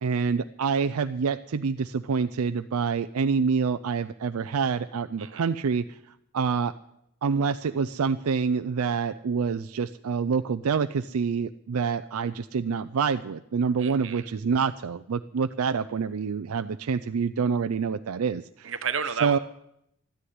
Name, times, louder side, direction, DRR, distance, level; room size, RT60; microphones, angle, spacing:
voice 1, 0.0-6.0 6.3-6.7 7.2-18.7 19.2-19.4, right 5 dB, 90° right, 10 dB, 0.4 m, -27 dB
voice 2, 13.8-14.2 18.6-19.4, right 6 dB, 65° right, 10 dB, 1.1 m, -31 dB
13.0 x 9.9 x 9.4 m, 0.78 s
head